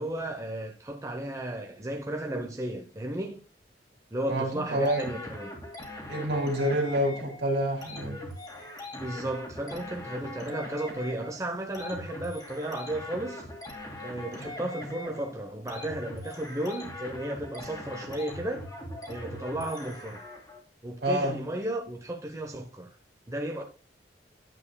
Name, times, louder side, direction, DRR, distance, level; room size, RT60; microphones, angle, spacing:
voice 1, 0.0-3.4 4.1-5.5 8.9-13.5 14.0-18.6 19.1-20.2 20.8-22.9 23.3-23.6, right 1 dB, 20° right, 0.8 m, -34 dB
voice 2, 4.3-5.1 6.1-8.2 21.0-21.4, right 1 dB, 70° right, 2.6 m, -28 dB
sound 1, 4.9-20.6, left 1 dB, 25° left, 2.2 m, -41 dB
9.9 x 7.4 x 2.2 m
head